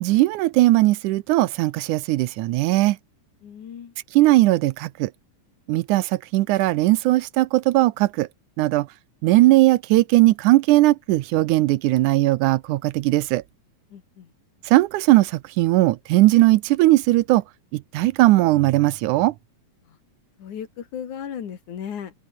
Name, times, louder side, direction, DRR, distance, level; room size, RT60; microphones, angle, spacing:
voice 1, 0.0-3.0 4.1-5.1 5.7-8.3 8.6-8.9 9.2-13.4 14.7-17.4 17.7-19.3, right 17 dB, 80° right, 2.1 m, -18 dB
voice 2, 3.4-3.9 13.9-14.3 19.9-20.0 20.4-22.1, left 8 dB, 70° left, 3.7 m, -35 dB
open air
omnidirectional pair, 3.6 m